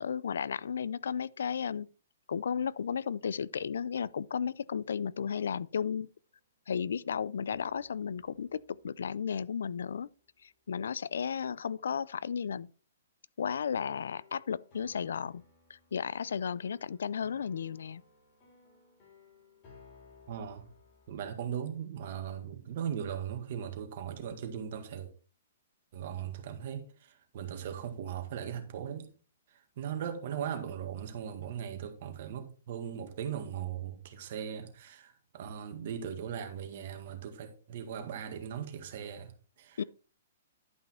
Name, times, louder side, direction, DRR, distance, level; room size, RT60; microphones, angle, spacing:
voice 1, 0.0-1.9 2.3-6.1 6.7-10.1 10.4-12.7 13.4-15.4 15.7-18.0 39.8-39.9, left 7 dB, 85° left, 0.4 m, -34 dB
sound 1, 5.2-6.3 7.5-10.8 13.5-21.4, left 3 dB, 30° left, 4.1 m, -61 dB
voice 2, 20.3-20.7 21.1-25.1 25.9-29.1 29.5-39.3 39.6-39.8, right 8 dB, 45° right, 1.8 m, -39 dB
11.5 x 5.5 x 4.3 m
hypercardioid pair, 170°, 0 cm